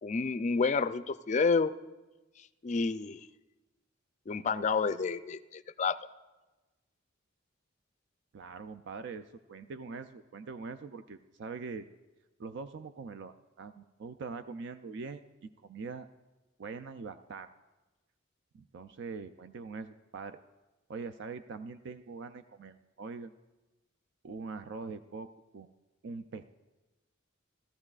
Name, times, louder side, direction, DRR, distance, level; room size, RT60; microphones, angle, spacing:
voice 1, 0.0-1.7 2.6-3.2 4.3-6.0, left 4 dB, 35° left, 13 dB, 0.4 m, -29 dB
voice 2, 8.3-11.9 12.4-16.1 16.6-17.5 18.5-20.4 20.9-23.3 24.2-25.3 25.5-25.7 26.0-26.4, right 4 dB, 60° right, 10 dB, 0.4 m, -43 dB
17.0 x 13.5 x 2.4 m, 1.1 s
head